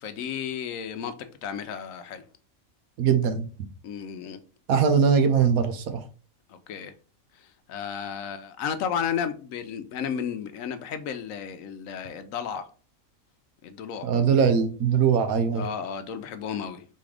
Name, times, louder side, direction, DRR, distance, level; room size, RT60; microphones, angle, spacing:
voice 1, 0.0-2.2 3.8-4.4 6.5-6.9 7.7-12.7 13.6-14.1 15.5-16.8, left 7 dB, 75° left, 1.0 m, -33 dB
voice 2, 3.0-3.4 4.7-6.0 14.0-15.7, right 6 dB, 80° right, 1.2 m, -21 dB
4.2 x 3.7 x 3.3 m
omnidirectional pair, 1.5 m